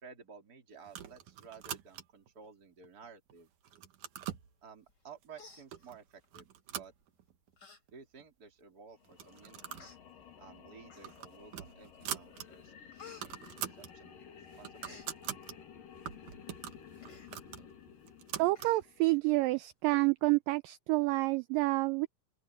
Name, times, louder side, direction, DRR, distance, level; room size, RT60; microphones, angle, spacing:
voice 1, 0.0-3.5 4.6-6.9 7.9-9.9 10.4-15.0, right 6 dB, 25° right, 3.8 m, -54 dB
sound 1, 0.9-2.3 2.8-3.3 3.6-4.5 5.2-5.3 5.7-6.0 6.3-7.6 7.9-8.0 8.2-8.3 9.1-9.9 10.2-10.4 10.8-12.5 12.8-12.9 13.1-13.9 14.3-15.6 16.1-18.8, right 10 dB, 60° right, 2.8 m, -43 dB
Human voice, 4.9-5.1 5.3-6.3 7.0-7.2 7.6-7.8 8.2-8.3 9.1-9.2 9.8-10.0 10.9-11.4 11.9-12.3 12.5-14.2 14.5-15.1 17.0-17.3 17.7-17.8 18.1-18.2 18.6-19.2 19.6-19.7, left 5 dB, 25° left, 5.6 m, -55 dB
sound 2, 9.0-19.3, left 8 dB, 65° left, 4.1 m, -54 dB
voice 2, 18.4-22.1, right 21 dB, 80° right, 2.1 m, -28 dB
open air
omnidirectional pair, 4.3 m